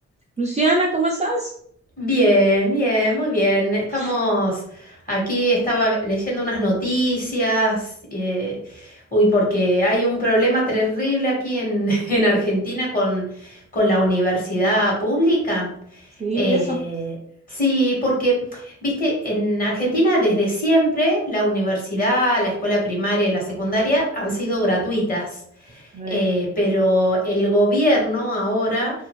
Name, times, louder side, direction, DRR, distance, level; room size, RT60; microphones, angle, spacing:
voice 1, 0.4-1.5 3.9-4.2 16.2-16.8 25.9-26.3, right 2 dB, 25° right, -2 dB, 0.5 m, -22 dB
voice 2, 2.0-15.7 16.3-17.2 17.5-25.4 25.7-28.9, equal, 30° left, -3 dB, 1.3 m, -21 dB
2.5 x 2.4 x 3.0 m, 0.66 s
cardioid pair, 100°, 29 cm